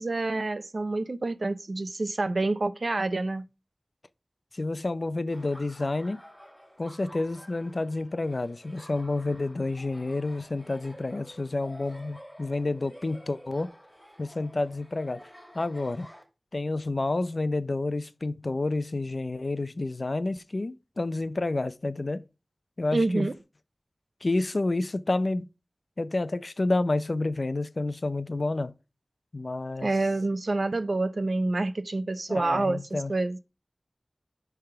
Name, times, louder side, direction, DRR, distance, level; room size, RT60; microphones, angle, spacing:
voice 1, 0.0-3.4 22.9-23.3 29.8-33.4, right 2 dB, 80° right, 0.6 m, -27 dB
voice 2, 4.5-6.2 6.8-13.7 14.2-15.3 15.5-16.1 16.5-22.2 22.8-23.3 24.2-25.4 26.0-28.7 29.3-29.9 32.3-33.1, left 2 dB, 65° left, 0.6 m, -29 dB
Laughter, 5.3-16.2, equal, ahead, 2.7 m, -50 dB
10.5 x 3.5 x 5.8 m
wide cardioid pair, 60°, 0 cm